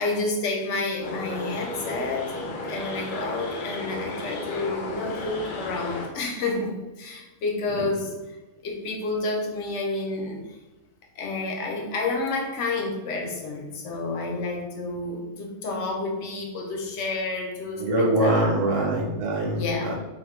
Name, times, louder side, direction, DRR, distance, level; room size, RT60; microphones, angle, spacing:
voice 1, 0.0-2.3 2.7-8.1 8.6-10.4 11.2-18.5 19.6-19.9, left 3 dB, 65° left, 1 dB, 0.9 m, -30 dB
sound 1, 1.0-6.1, left 2 dB, 85° left, 0.4 m, -34 dB
voice 2, 17.8-19.9, right 1 dB, 65° right, -2 dB, 1.2 m, -23 dB
3.5 x 2.2 x 3.2 m, 1.1 s
omnidirectional pair, 1.4 m